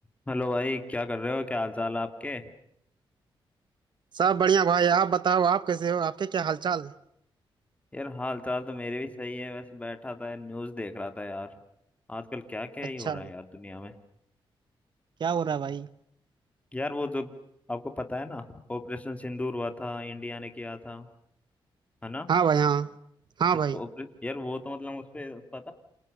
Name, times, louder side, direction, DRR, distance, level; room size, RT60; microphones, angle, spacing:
voice 1, 0.3-2.5 7.9-11.5 12.1-13.9 16.7-17.3 17.7-21.1 22.0-22.3 23.7-25.7, left 2 dB, 15° left, 2.8 m, -34 dB
voice 2, 4.1-6.9 13.0-13.3 15.2-15.9 22.3-22.9 23.4-23.8, right 7 dB, 55° right, 1.0 m, -24 dB
28.5 x 27.0 x 6.8 m
cardioid pair, 100°, 9 cm